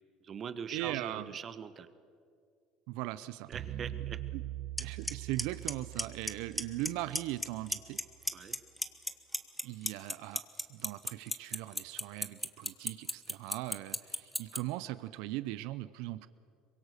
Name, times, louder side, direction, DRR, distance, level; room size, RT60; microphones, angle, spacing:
voice 1, 0.2-1.9 3.5-4.2 8.3-8.6, right 7 dB, 40° right, 12 dB, 1.3 m, -42 dB
voice 2, 0.7-1.3 2.9-3.5 4.3-4.4 4.8-8.0 9.6-10.4 10.7-16.3, right 16 dB, 75° right, 15 dB, 0.6 m, -39 dB
sound 1, 3.5-7.9, right 13 dB, 55° right, 1.0 m, -43 dB
Clock, 4.8-4.9 5.1-5.4 5.7-6.3 6.6-6.9 7.2-8.0 8.3-14.6, left 1 dB, 5° left, 1.1 m, -32 dB
24.0 x 22.0 x 6.7 m, 2.3 s
supercardioid pair, 110°, 0 cm